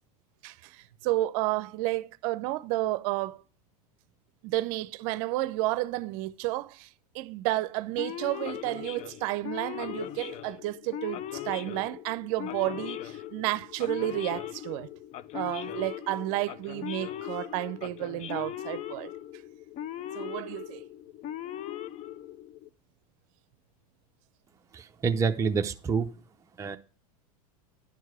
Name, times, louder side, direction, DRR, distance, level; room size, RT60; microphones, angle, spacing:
voice 1, 0.4-3.4 4.4-6.9 7.1-14.9 15.3-19.1 20.1-20.8, right 17 dB, 60° right, 0.6 m, -31 dB
Male speech man speaking / Siren, 8.0-22.7, left 11 dB, 35° left, 0.4 m, -39 dB
voice 2, 24.7-26.1 26.6-26.8, right 5 dB, 15° right, 0.6 m, -27 dB
10.5 x 4.6 x 4.7 m
hypercardioid pair, 105°, 20 cm